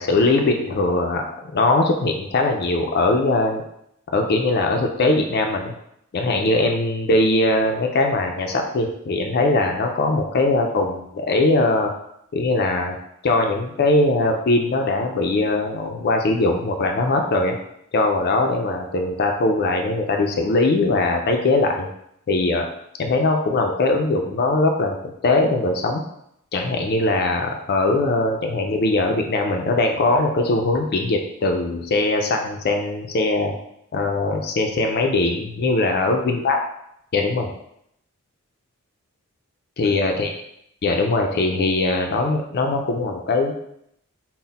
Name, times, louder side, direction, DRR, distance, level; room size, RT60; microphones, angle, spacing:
voice 1, 0.0-3.6 4.1-5.7 6.1-11.9 12.3-13.0 13.2-17.6 17.9-21.9 22.3-22.7 23.0-26.0 26.5-33.5 33.9-36.6 37.1-37.5 39.8-40.3 40.8-43.5, left 2 dB, 45° left, 3 dB, 0.4 m, -21 dB
4.0 x 2.1 x 4.0 m, 0.75 s
head